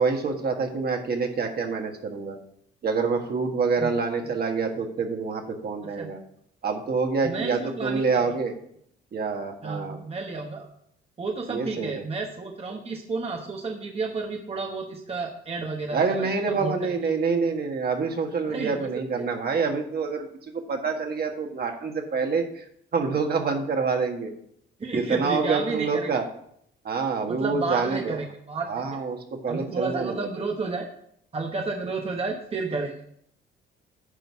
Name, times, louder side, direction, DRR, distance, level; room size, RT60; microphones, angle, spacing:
voice 1, 0.0-2.4 2.8-6.2 6.6-8.5 9.1-10.0 11.5-12.0 15.9-22.6 22.9-24.3 24.9-26.3 26.8-28.2 28.7-30.1, right 4 dB, 50° right, 3 dB, 1.6 m, -26 dB
voice 2, 7.2-8.3 9.6-10.7 11.2-17.0 18.5-18.9 19.2-19.3 24.8-26.2 27.3-28.8 29.5-30.9 31.3-33.0, right 3 dB, 30° right, 2 dB, 1.1 m, -31 dB
10.0 x 4.0 x 6.9 m, 0.69 s
cardioid pair, 90°, 20 cm